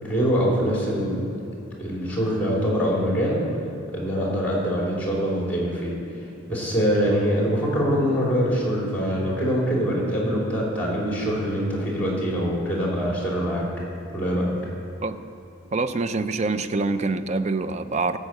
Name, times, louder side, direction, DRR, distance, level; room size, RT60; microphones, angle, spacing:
voice 1, 0.0-1.2 1.8-3.4 3.9-5.9 6.5-13.6 14.1-14.5, equal, 10° left, -4 dB, 3.1 m, -24 dB
voice 2, 15.7-18.2, right 3 dB, 35° right, 11 dB, 0.4 m, -25 dB
13.5 x 5.7 x 7.9 m, 2.8 s
head